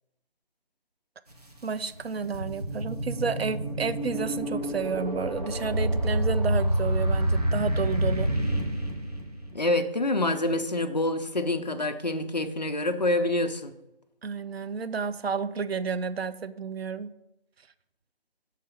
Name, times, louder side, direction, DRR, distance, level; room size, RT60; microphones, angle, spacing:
sound 1, 1.3-1.4 1.9-9.6, right 1 dB, 40° right, 1.2 m, -28 dB
voice 1, 1.6-8.3 14.2-17.1, right 5 dB, 80° right, 13 dB, 0.6 m, -31 dB
voice 2, 9.5-13.7, left 2 dB, 45° left, 7 dB, 0.5 m, -27 dB
6.6 x 3.8 x 5.7 m, 0.88 s
figure-of-eight pair, 175°, 30 cm